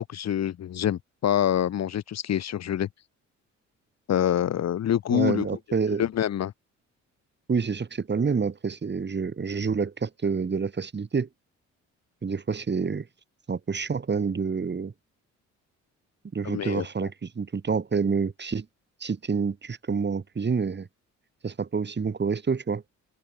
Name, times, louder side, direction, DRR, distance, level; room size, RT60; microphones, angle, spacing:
voice 1, 0.0-2.9 4.1-5.5 6.0-6.5 16.4-16.8, left 10 dB, 60° left, 1.6 m, -26 dB
voice 2, 5.1-6.0 7.5-11.3 12.2-13.1 13.5-14.9 16.3-18.7 19.0-20.9 21.4-22.8, right 5 dB, 35° right, 6.3 m, -28 dB
open air
cardioid pair, 90°, 30 cm